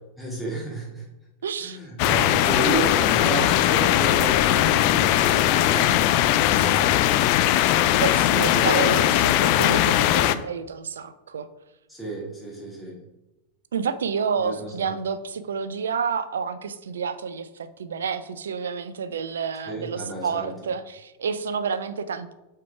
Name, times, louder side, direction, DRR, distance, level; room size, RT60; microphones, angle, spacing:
voice 1, 0.2-1.1 1.6-7.0 8.4-9.0 11.9-13.0 14.4-14.9 19.6-20.7, right 1 dB, ahead, -6 dB, 2.3 m, -31 dB
voice 2, 1.4-1.8 7.9-11.5 13.7-22.3, right 6 dB, 65° right, 13 dB, 0.5 m, -29 dB
sound 1, 2.0-10.4, left 13 dB, 45° left, 0.3 m, -20 dB
5.8 x 4.6 x 4.8 m, 1.0 s
figure-of-eight pair, 90°, 0 cm